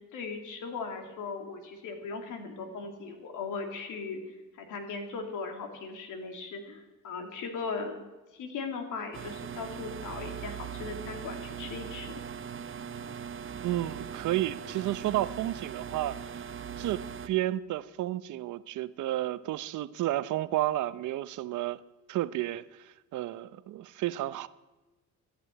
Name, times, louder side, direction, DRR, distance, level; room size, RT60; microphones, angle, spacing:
voice 1, 0.1-4.2 4.5-7.9 8.3-12.1, left 4 dB, 85° left, 2.7 m, -38 dB
sound 1, 9.1-17.3, right 7 dB, 45° right, 0.9 m, -40 dB
voice 2, 13.6-16.4 16.8-21.8 22.1-24.5, right 14 dB, 80° right, 0.7 m, -32 dB
14.0 x 10.0 x 8.9 m
cardioid pair, 90°, 30 cm